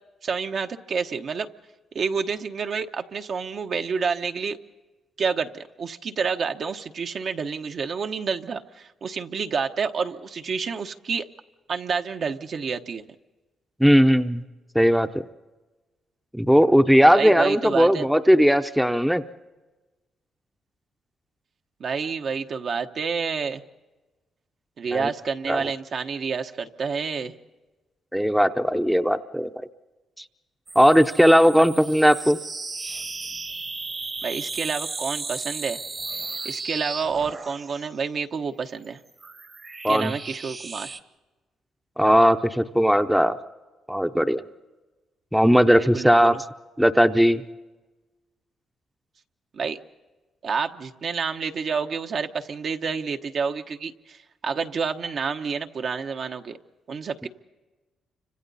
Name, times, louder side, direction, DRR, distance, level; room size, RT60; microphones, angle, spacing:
voice 1, 0.2-1.5 1.9-4.6 5.2-11.3 11.7-13.0 17.1-18.1 21.8-23.6 24.8-27.3 34.2-35.8 36.1-39.0 39.9-40.9 45.8-46.4 49.5-49.8 50.4-56.6 56.9-57.3, right 5 dB, 55° right, 5 dB, 1.0 m, -29 dB
voice 2, 13.8-14.4 14.7-15.2 16.3-19.2 24.9-25.1 25.5-25.7 28.1-29.7 30.2-30.3 30.8-32.4 39.8-40.1 42.0-43.4 43.9-44.4 45.3-46.4 46.8-47.4 57.2-57.3, equal, ahead, 8 dB, 0.8 m, -18 dB
sound 1, 30.7-38.0 38.8-41.0, right 3 dB, 35° right, 1.2 m, -35 dB
29.5 x 26.0 x 4.1 m, 1.2 s
cardioid pair, 90°, 0 cm